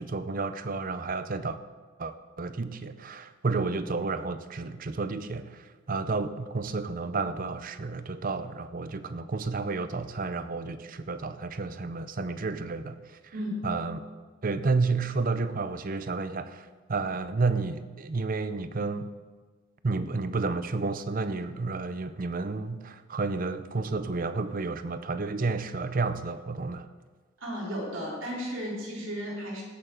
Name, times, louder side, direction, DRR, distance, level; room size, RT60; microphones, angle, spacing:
voice 1, 0.0-1.6 2.0-13.3 13.6-14.0 14.4-19.1 19.8-26.9, right 3 dB, 40° right, 11 dB, 0.5 m, -31 dB
voice 2, 13.3-13.7 27.4-29.6, equal, 65° right, -4 dB, 3.7 m, -34 dB
17.5 x 9.0 x 3.9 m, 1.4 s
head